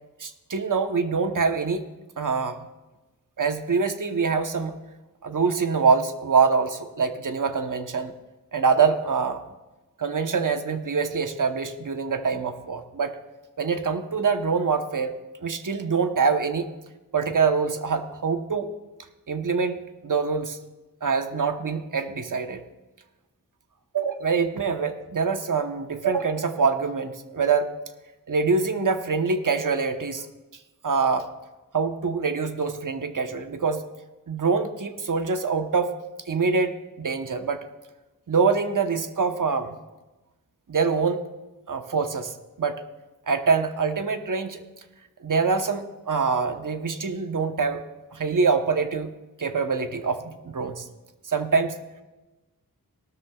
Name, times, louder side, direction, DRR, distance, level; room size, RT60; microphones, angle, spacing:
voice 1, 0.2-1.8 2.2-2.6 3.4-4.7 5.2-8.1 8.5-9.4 10.0-13.2 13.6-15.1 15.4-16.7 17.1-18.7 19.3-20.6 21.0-22.6 23.9-27.7 28.3-30.3 30.8-31.3 31.7-33.8 34.3-35.9 36.3-37.6 38.3-39.8 40.7-41.2 41.7-42.3 42.6-42.8 43.3-44.6 45.2-47.9 48.1-49.1 49.4-50.9 51.3-51.7, right 5 dB, 60° right, 7 dB, 1.0 m, -24 dB
17.5 x 13.0 x 2.4 m, 1.1 s
wide cardioid pair, 70°, 35 cm